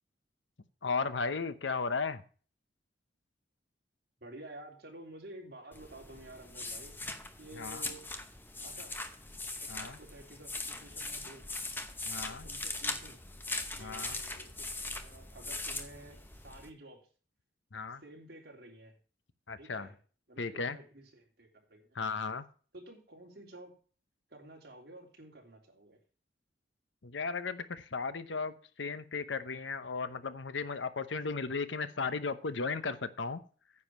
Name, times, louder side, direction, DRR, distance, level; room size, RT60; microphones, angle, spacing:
voice 1, 0.8-2.2 7.6-7.8 9.7-10.0 12.1-12.5 13.8-14.2 17.7-18.0 19.5-19.9 20.4-20.8 21.9-22.5 27.0-33.4, left 4 dB, 75° left, 13 dB, 0.9 m, -35 dB
voice 2, 4.2-7.0 7.4-8.0 8.6-9.0 9.6-11.4 12.3-13.2 13.8-17.1 17.9-18.9 19.6-19.9 20.3-22.0 22.7-23.7 24.3-26.0, right 1 dB, 55° right, 0 dB, 3.2 m, -51 dB
sound 1, 5.7-16.7, left 2 dB, 10° left, 0.8 m, -40 dB
9.7 x 7.2 x 6.0 m, 0.40 s
head